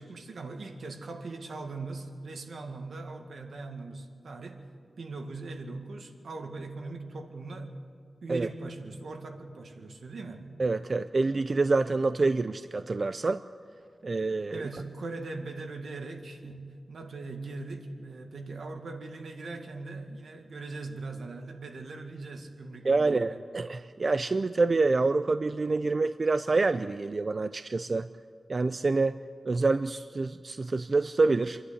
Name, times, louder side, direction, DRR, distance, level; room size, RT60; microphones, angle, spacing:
voice 1, 0.0-4.6 5.0-7.7 8.2-10.5 14.5-23.4, right 3 dB, 85° right, 4 dB, 1.9 m, -40 dB
voice 2, 10.6-13.4 14.0-14.6 22.8-28.1 28.5-31.6, right 3 dB, 45° right, 11 dB, 0.4 m, -27 dB
27.0 x 11.0 x 9.9 m, 2.1 s
wide cardioid pair, 110°, 0 cm